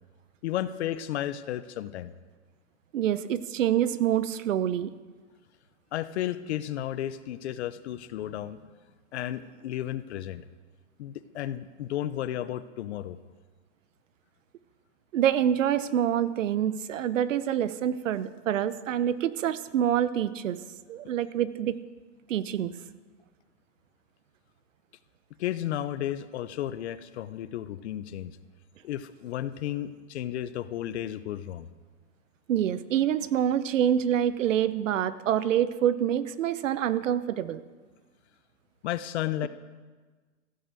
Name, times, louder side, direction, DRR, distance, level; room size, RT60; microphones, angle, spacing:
voice 1, 0.4-2.1 5.9-8.6 9.1-10.4 11.0-13.2 25.4-28.3 28.8-31.7 38.8-39.5, left 12 dB, 60° left, 14 dB, 0.8 m, -33 dB
voice 2, 2.9-4.9 15.1-20.6 20.9-21.8 22.3-22.7 32.5-37.6, right 10 dB, 80° right, 15 dB, 0.9 m, -26 dB
14.5 x 9.9 x 7.6 m, 1.4 s
supercardioid pair, 155°, 37 cm